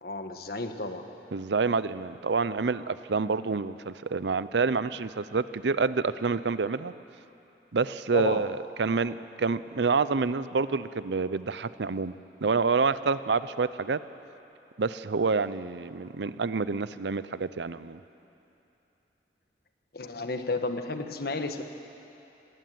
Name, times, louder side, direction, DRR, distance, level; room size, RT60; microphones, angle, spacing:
voice 1, 0.0-1.1 8.1-8.4 19.9-21.6, left 2 dB, 60° left, 7 dB, 1.4 m, -32 dB
voice 2, 1.3-6.9 7.7-12.1 12.4-14.0 14.8-18.0, right 4 dB, 80° right, 15 dB, 0.6 m, -28 dB
19.5 x 18.0 x 9.4 m, 2.9 s
head